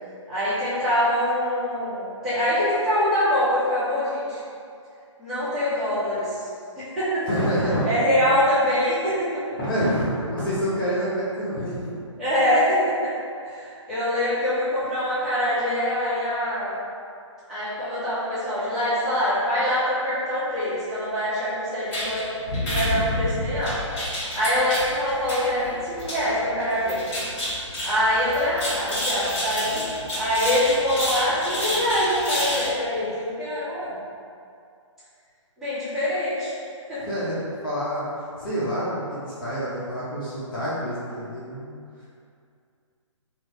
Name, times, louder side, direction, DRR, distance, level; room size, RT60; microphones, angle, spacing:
voice 1, 0.3-4.4 5.2-6.4 6.7-7.2 7.8-9.3 12.2-13.1 13.4-16.7 17.5-22.2 22.6-23.8 24.3-27.0 27.8-29.8 30.1-33.9 35.6-36.5 36.9-37.0, equal, 5° right, -17 dB, 1.2 m, -24 dB
voice 2, 7.3-7.9 9.6-11.9 37.1-37.4 37.6-38.0 38.4-41.8, equal, 40° left, -9 dB, 0.8 m, -27 dB
sound 1, 21.9-32.7, left 1 dB, 25° left, 1.4 m, -29 dB
3.1 x 2.5 x 3.0 m, 2.4 s
figure-of-eight pair, 140°, 16 cm